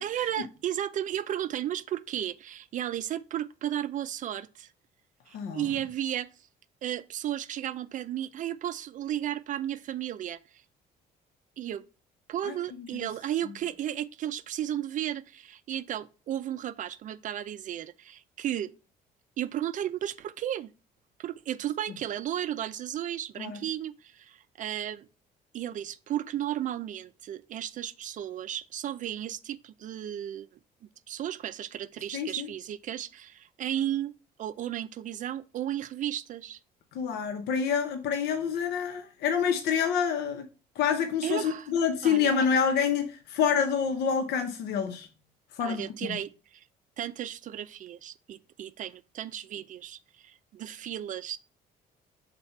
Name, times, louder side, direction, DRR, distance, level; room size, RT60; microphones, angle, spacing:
voice 1, 0.0-4.7 5.3-6.3 6.8-10.6 11.6-11.8 12.3-18.7 19.4-20.7 21.2-25.1 25.5-30.5 31.1-34.1 34.4-36.6 41.2-41.7 42.0-42.3 45.6-46.6 47.0-51.4, right 11 dB, 50° right, 0.4 m, -34 dB
voice 2, 5.3-5.6 12.5-12.6 23.4-23.6 32.1-32.5 36.9-40.5 40.8-45.1 45.6-46.2, left 7 dB, 75° left, 0.7 m, -27 dB
5.6 x 4.1 x 4.3 m
cardioid pair, 110°, 17 cm